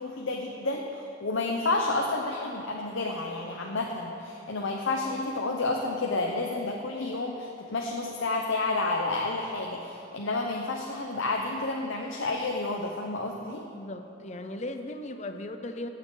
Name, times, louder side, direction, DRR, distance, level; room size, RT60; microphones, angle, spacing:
voice 1, 0.0-13.6, left 2 dB, 75° left, 1 dB, 0.8 m, -30 dB
voice 2, 13.7-15.9, left 1 dB, 35° left, 7 dB, 0.6 m, -37 dB
17.5 x 7.6 x 3.9 m, 3.0 s
head